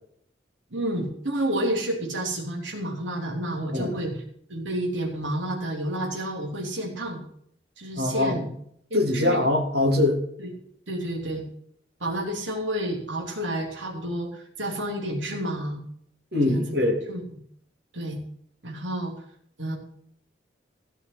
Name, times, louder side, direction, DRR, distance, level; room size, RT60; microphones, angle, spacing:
voice 1, 0.7-4.2 4.5-7.2 7.8-8.4 8.9-9.4 10.4-10.5 10.9-11.4 12.0-15.8 16.4-16.6 17.1-17.2 17.9-18.2 18.6-19.1 19.6-19.8, right 1 dB, 80° right, 0 dB, 3.2 m, -30 dB
voice 2, 7.9-8.5 8.9-10.2 16.3-17.0, left 2 dB, 55° right, -2 dB, 3.1 m, -23 dB
16.0 x 5.7 x 7.5 m, 0.66 s
head